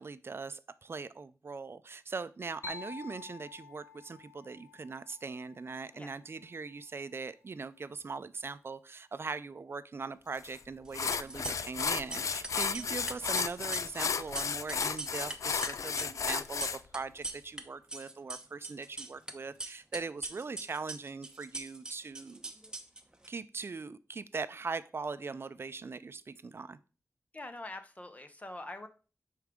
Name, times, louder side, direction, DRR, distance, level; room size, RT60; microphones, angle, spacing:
voice 1, 0.0-22.5 23.3-26.8, right 4 dB, 50° right, 14 dB, 0.4 m, -41 dB
sound 1, 2.6-6.3, left 5 dB, 55° left, 0.9 m, -49 dB
sound 2, 10.4-10.6 10.9-16.8, left 6 dB, 85° left, 0.4 m, -33 dB
sound 3, 10.9-11.8 12.1-17.6 17.9-19.3 19.6-23.3, right 2 dB, 15° right, 0.8 m, -41 dB
voice 2, 27.3-28.9, left 2 dB, 25° left, 9 dB, 0.7 m, -44 dB
9.4 x 4.6 x 3.6 m, 0.35 s
wide cardioid pair, 120°, 5 cm